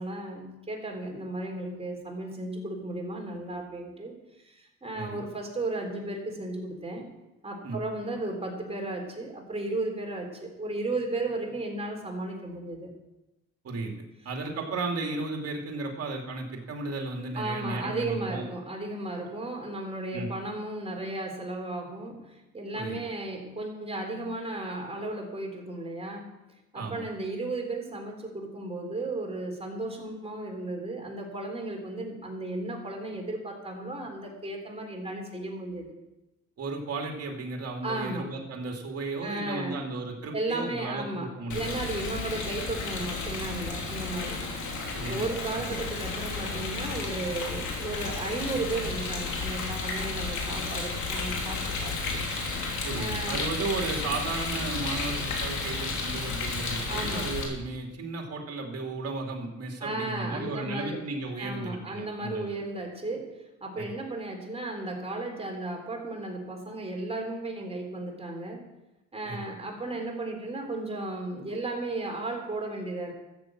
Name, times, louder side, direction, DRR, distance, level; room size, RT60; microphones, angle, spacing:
voice 1, 0.0-4.2 4.4-7.1 7.4-12.9 17.4-26.3 26.7-35.9 37.8-38.3 39.2-39.8 40.3-52.2 52.9-53.5 56.9-57.3 59.8-61.0 61.4-68.6 69.1-73.1, right 2 dB, 20° right, 1 dB, 3.9 m, -35 dB
voice 2, 14.2-18.5 20.1-20.3 22.7-23.0 26.7-27.1 36.6-41.8 42.0-42.2 44.9-45.2 45.5-45.8 52.8-62.6 63.8-63.9 69.2-69.5, right 3 dB, 50° right, 2 dB, 2.7 m, -34 dB
Rain, 41.5-57.4, left 4 dB, 75° left, 3.3 m, -32 dB
13.5 x 7.4 x 7.8 m, 0.98 s
cardioid pair, 90°, 30 cm